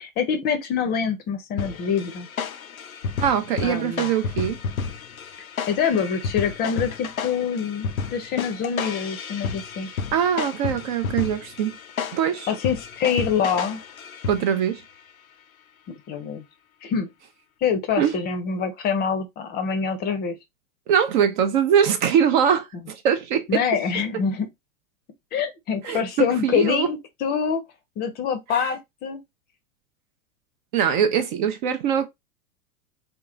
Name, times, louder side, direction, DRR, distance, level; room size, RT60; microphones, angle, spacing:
voice 1, 0.0-2.3 3.6-4.1 5.7-9.9 12.5-13.8 15.9-16.4 16.8-17.1 17.6-20.4 23.5-24.5 25.3-27.6 28.0-29.2, left 6 dB, 25° left, 0.6 m, -25 dB
sound 1, 1.6-14.7, left 6 dB, 85° left, 0.5 m, -32 dB
voice 2, 3.2-4.6 10.1-11.7 12.1-12.5 14.3-14.8 18.0-18.1 20.9-23.6 25.8-26.0 26.4-26.9 30.7-32.1, right 8 dB, 35° right, 0.5 m, -22 dB
3.7 x 2.4 x 3.6 m
figure-of-eight pair, 95°, 41 cm